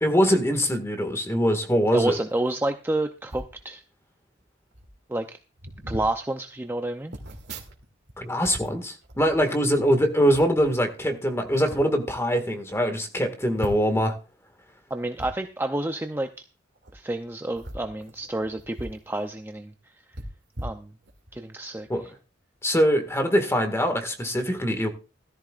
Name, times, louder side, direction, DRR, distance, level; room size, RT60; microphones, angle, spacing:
voice 1, 0.0-2.2 8.2-14.1 21.9-22.1 22.6-24.9, equal, 15° left, 7 dB, 1.9 m, -23 dB
voice 2, 1.9-3.8 5.1-5.4 5.9-7.2 14.9-16.3 16.9-19.7 20.6-20.9 21.3-21.9, right 2 dB, 10° right, 6 dB, 0.6 m, -29 dB
sound 1, 3.3-3.6 4.4-4.5 4.7-5.0 5.6-6.1 7.1-8.2 8.4-9.8 10.3-10.7 11.4-11.8 12.4-12.5 12.7-12.8 13.6-14.1 15.1-15.3 16.8-16.9 17.5-19.0 19.3-19.4 20.1-21.4 21.8-22.0, right 1 dB, 60° right, 2.6 m, -39 dB
16.5 x 13.5 x 2.5 m, 0.33 s
head